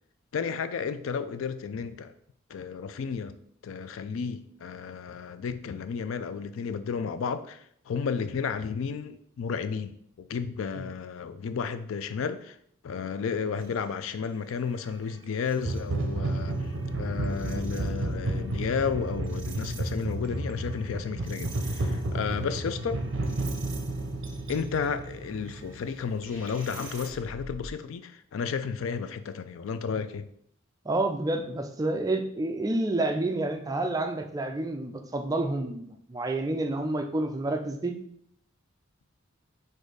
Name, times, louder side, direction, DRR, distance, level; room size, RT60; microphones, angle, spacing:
voice 1, 0.3-2.1 2.5-3.3 3.6-12.6 12.8-16.6 17.0-23.0 24.5-30.3, left 6 dB, 75° left, 12 dB, 0.4 m, -32 dB
sound 1, 14.5-14.6 15.5-27.1, right 2 dB, 60° right, 0.6 m, -32 dB
sound 2, 26.2-27.7, equal, 30° left, 1.8 m, -45 dB
voice 2, 30.9-37.9, right 2 dB, 20° right, 5 dB, 0.4 m, -29 dB
4.3 x 2.6 x 4.6 m, 0.67 s
head